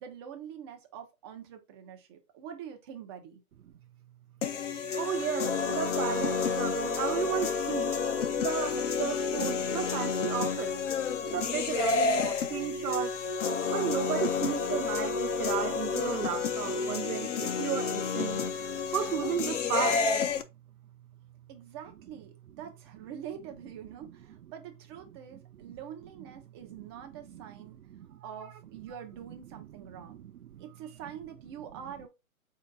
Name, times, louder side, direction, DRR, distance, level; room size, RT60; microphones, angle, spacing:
voice 1, 0.0-3.4 21.5-27.8 28.2-30.2 30.6-32.1, right 8 dB, 20° right, 0.6 m, -45 dB
sound 1, 4.4-20.4, left 5 dB, 55° left, 0.8 m, -30 dB
voice 2, 5.0-7.9 8.4-10.8 11.2-13.2 13.6-18.4 18.9-20.1 25.6-25.7 27.1-27.4 27.9-28.5 29.5-31.0, right 10 dB, 85° right, 0.5 m, -34 dB
4.2 x 2.8 x 3.7 m
hypercardioid pair, 140°, 43 cm